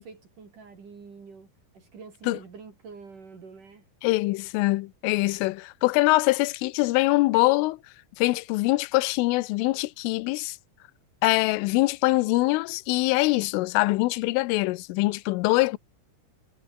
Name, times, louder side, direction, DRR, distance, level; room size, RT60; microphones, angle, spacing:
voice 1, 0.0-1.5 1.7-3.8, right 5 dB, 40° right, 5.1 m, -46 dB
voice 2, 4.0-7.8 8.2-10.6 11.2-15.8, left 21 dB, 85° left, 3.3 m, -23 dB
omnidirectional pair, 5.8 m